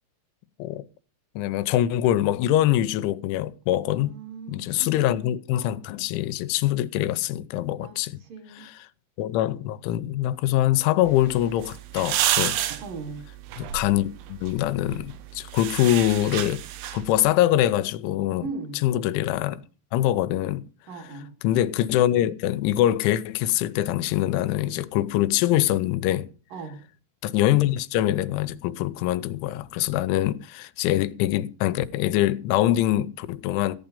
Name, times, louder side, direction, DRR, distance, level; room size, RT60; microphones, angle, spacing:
voice 1, 1.4-4.1 4.5-8.2 8.6-8.7 9.2-12.6 13.6-16.6 16.9-18.4 18.8-19.6 19.9-20.7 21.4-26.3 27.2-33.8, left 13 dB, 90° left, 3.2 m, -24 dB
voice 2, 3.8-5.2 7.8-8.7 12.8-13.2 18.4-18.8 20.9-21.3 26.5-26.8, right 4 dB, 55° right, 3.3 m, -38 dB
sound 1, 11.0-17.2, right 11 dB, 70° right, 2.9 m, -31 dB
15.0 x 9.1 x 5.3 m
omnidirectional pair, 5.3 m